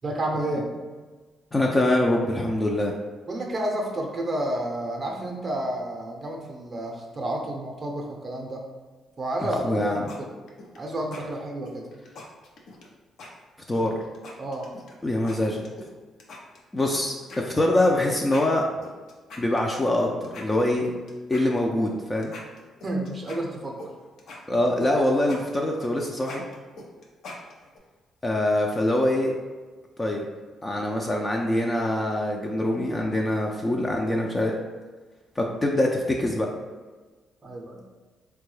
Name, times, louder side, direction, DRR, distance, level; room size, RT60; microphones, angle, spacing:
voice 1, 0.0-0.7 3.3-8.6 9.2-10.3 10.8-11.9 14.4-14.7 22.8-23.8 37.4-37.9, right 1 dB, 35° right, 1 dB, 0.5 m, -30 dB
voice 2, 1.5-2.9 9.6-10.0 13.7-14.0 15.0-15.6 16.7-18.6 19.4-20.9 21.3-22.3 24.5-26.4 28.2-29.3 30.0-30.3 30.6-34.5 35.4-36.5, left 1 dB, 20° left, 0 dB, 0.3 m, -24 dB
sound 1, 9.6-10.2 10.5-10.8 11.1-11.2 11.6-12.9 13.2-13.3 13.7-14.9 15.3-15.9 16.2-17.0 17.3-17.4 17.8-17.9 18.2-19.9 20.2-21.9 22.2-23.9 24.2-27.8, left 2 dB, 70° left, 0.6 m, -42 dB
3.6 x 2.2 x 3.1 m, 1.3 s
cardioid pair, 90°, 0 cm